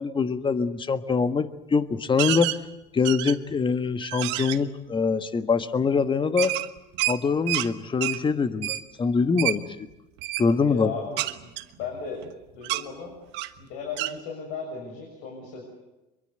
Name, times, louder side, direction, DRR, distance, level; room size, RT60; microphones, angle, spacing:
voice 1, 0.0-2.5 2.9-6.5 7.1-9.8 10.4-10.9, left 5 dB, 25° left, 11 dB, 1.5 m, -24 dB
sound 1, 2.2-2.6 3.0-3.5 4.0-4.6 6.4-7.7 8.0-8.2 8.6-8.8 9.4-9.6 10.2-10.5 11.2-12.3 12.6-12.8 13.3-13.6 14.0-14.1, right 17 dB, 60° right, 1.3 m, -28 dB
voice 2, 10.7-11.5 11.8-12.2 12.5-13.1 13.6-15.6, left 5 dB, 65° left, 1 dB, 6.7 m, -36 dB
25.0 x 22.5 x 8.0 m, 1.0 s
hypercardioid pair, 90°, 21 cm